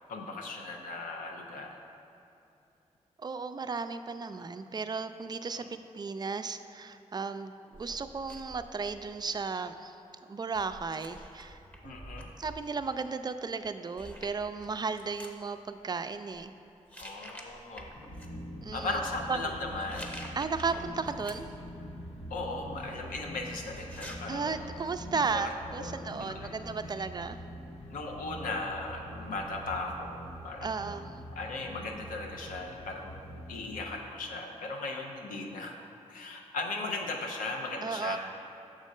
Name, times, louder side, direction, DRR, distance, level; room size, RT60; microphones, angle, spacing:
voice 1, 0.1-1.8 5.5-5.7 11.8-12.3 17.0-17.9 18.7-20.1 22.3-24.7 25.0-25.5 25.8-26.5 27.9-30.7 31.3-33.2 33.5-35.8 36.1-38.2, left 2 dB, 90° left, 1 dB, 0.6 m, -37 dB
voice 2, 3.2-10.0 10.3-12.0 12.4-16.5 18.6-19.0 19.3-19.5 20.3-21.5 24.3-27.4 30.6-31.1 37.8-38.2, right 4 dB, 30° right, 10 dB, 0.3 m, -35 dB
sound 1, 7.7-9.6 10.5-12.6 13.6-13.7 14.0-15.3 16.1-16.4 16.9-18.3 19.7-21.6 22.0-24.2, equal, 10° left, 0.8 m, -49 dB
sound 2, 17.9-33.8, equal, 50° left, 0.7 m, -44 dB
6.3 x 3.7 x 5.3 m, 2.8 s
cardioid pair, 50°, 14 cm